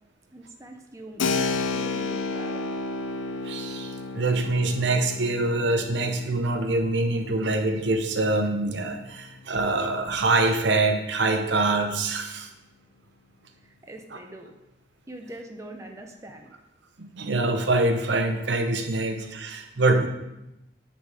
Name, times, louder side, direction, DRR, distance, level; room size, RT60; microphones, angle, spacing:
voice 1, 0.3-1.2 1.7-2.7 13.6-14.5 15.1-16.5 19.4-19.5, right 1 dB, 15° right, 2 dB, 0.6 m, -43 dB
Keyboard (musical), 1.2-9.6, left 4 dB, 85° left, 0.5 m, -32 dB
voice 2, 3.4-12.5 17.0-20.1, right 2 dB, 65° right, 6 dB, 0.8 m, -25 dB
9.6 x 4.1 x 4.8 m, 0.91 s
head